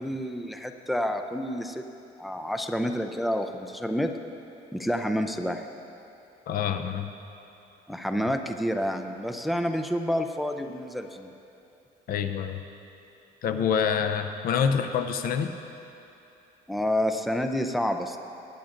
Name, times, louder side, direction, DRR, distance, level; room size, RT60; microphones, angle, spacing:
voice 1, 0.0-1.8 2.2-4.1 4.7-5.7 7.9-11.3 16.7-18.2, equal, ahead, 6 dB, 0.5 m, -29 dB
voice 2, 6.5-7.1 12.1-12.6 13.4-15.5, left 7 dB, 60° left, 8 dB, 0.6 m, -26 dB
19.5 x 9.9 x 2.6 m, 2.8 s
cardioid pair, 110°, 17 cm